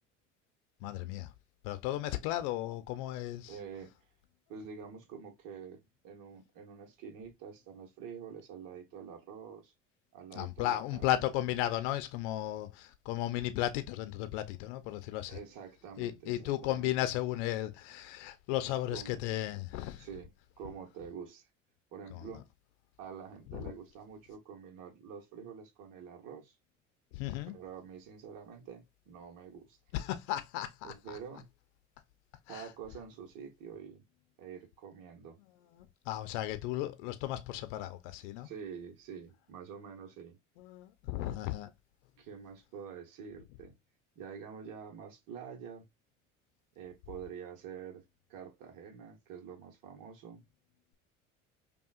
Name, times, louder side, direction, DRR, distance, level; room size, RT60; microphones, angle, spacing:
voice 1, 0.8-1.3 1.6-3.5 10.3-15.4 16.0-20.1 22.1-22.2 23.5-23.7 27.1-27.5 29.9-31.2 32.5-32.7 36.1-38.5 40.6-41.7, left 14 dB, 65° left, 0.6 m, -35 dB
voice 2, 3.5-3.9 4.5-9.7 10.1-11.3 15.3-16.9 18.9-19.1 20.0-21.5 21.9-22.5 23.0-26.5 27.5-29.8 30.8-31.5 32.5-34.0 34.4-35.4 38.4-40.4 42.2-43.8 44.2-45.9 46.7-48.0 48.3-50.4, right 7 dB, 55° right, 1.1 m, -47 dB
5.3 x 2.3 x 2.4 m
hypercardioid pair, 65°, 38 cm